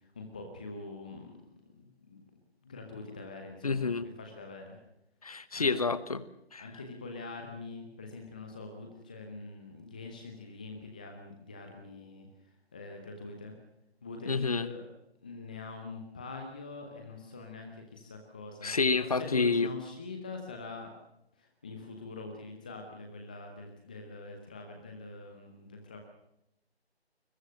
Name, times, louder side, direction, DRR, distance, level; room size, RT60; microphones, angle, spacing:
voice 1, 0.1-4.8 5.5-5.7 6.6-13.6 14.0-14.9 15.2-20.9 21.4-26.0, left 3 dB, 10° left, 4 dB, 0.8 m, -44 dB
voice 2, 3.6-4.1 5.2-6.2 6.5-6.7 14.2-14.7 18.6-19.7, left 4 dB, 35° left, 16 dB, 1.1 m, -28 dB
21.5 x 20.5 x 6.4 m, 0.82 s
figure-of-eight pair, 155°, 33 cm